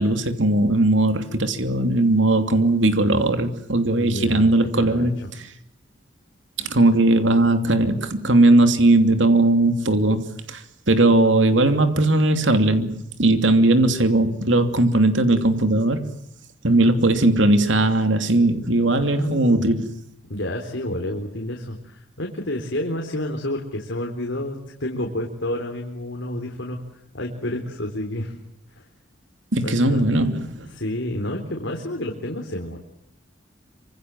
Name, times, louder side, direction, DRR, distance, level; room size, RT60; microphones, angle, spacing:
voice 1, 0.0-5.1 6.6-10.6 10.9-16.0 16.6-19.9 29.5-30.6, right 2 dB, 75° right, 2.9 m, -18 dB
voice 2, 4.0-4.5 4.8-5.1 16.7-16.9 19.0-19.7 20.3-26.8 27.1-28.3 28.7-28.8 29.6-30.3 30.7-32.8, left 1 dB, 75° left, 4.0 m, -30 dB
26.5 x 26.0 x 7.7 m
head